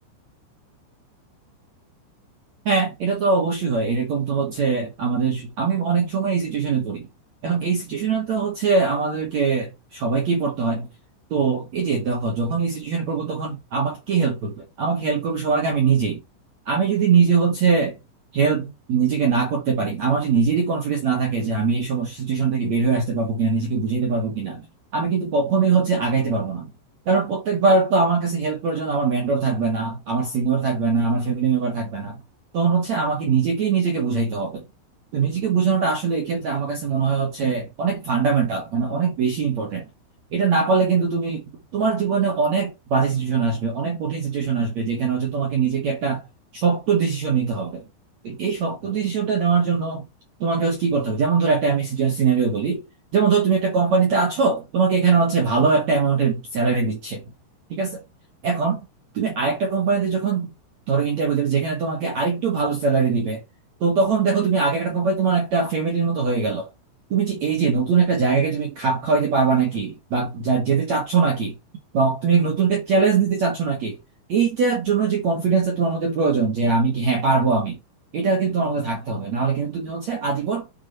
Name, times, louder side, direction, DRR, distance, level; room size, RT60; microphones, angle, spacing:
voice 1, 2.7-7.1 7.4-10.9 11.3-16.2 16.7-18.0 18.3-24.7 24.9-26.7 27.1-32.2 32.5-34.6 35.1-39.9 40.3-46.2 46.5-47.8 48.2-50.0 50.4-52.9 53.1-57.2 57.7-58.0 58.4-58.8 59.1-60.5 60.9-63.4 63.8-66.7 67.1-71.6 71.9-74.0 74.3-77.8 78.1-80.7, right 5 dB, 55° right, 2.1 m, -22 dB
6.6 x 6.0 x 4.3 m
omnidirectional pair, 5.6 m